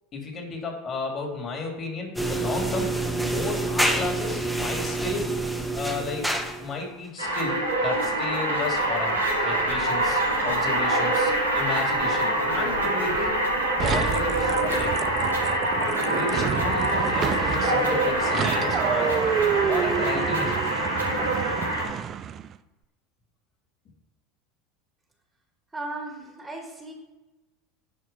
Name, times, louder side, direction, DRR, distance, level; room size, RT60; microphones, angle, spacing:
voice 1, 0.1-5.3 5.7-6.3 6.6-13.4 13.7-15.0 16.1-19.2 19.7-20.7, left 3 dB, 35° left, 1 dB, 2.9 m, -33 dB
sound 1, 2.2-6.8, right 2 dB, ahead, 1.3 m, -27 dB
sound 2, 7.2-21.8, right 1 dB, 90° right, 2.4 m, -25 dB
sound 3, 13.8-22.5, right 9 dB, 35° right, 0.4 m, -29 dB
voice 2, 25.7-26.9, right 2 dB, 15° right, 2 dB, 1.9 m, -36 dB
10.5 x 4.6 x 5.6 m, 1.1 s
figure-of-eight pair, 75°, 0 cm